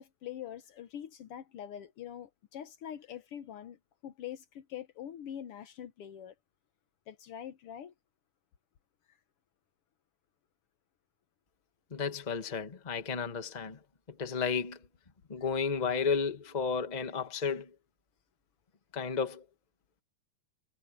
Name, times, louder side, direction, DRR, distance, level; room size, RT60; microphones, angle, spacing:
voice 1, 0.0-6.3 7.1-7.9, left 10 dB, 75° left, 1.3 m, -44 dB
voice 2, 11.9-13.8 14.2-14.8 15.3-17.7 18.9-19.4, left 5 dB, 35° left, 0.6 m, -32 dB
omnidirectional pair, 3.8 m